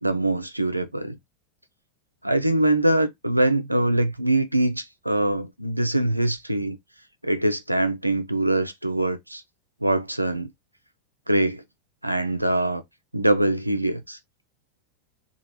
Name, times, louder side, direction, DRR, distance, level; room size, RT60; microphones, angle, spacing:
voice 1, 0.0-1.2 2.2-6.8 7.2-9.4 9.8-10.5 11.3-11.6 12.0-12.8 13.1-14.2, right 1 dB, 85° right, 0.5 m, -23 dB
3.0 x 2.4 x 4.2 m
figure-of-eight pair, 90°, 0 cm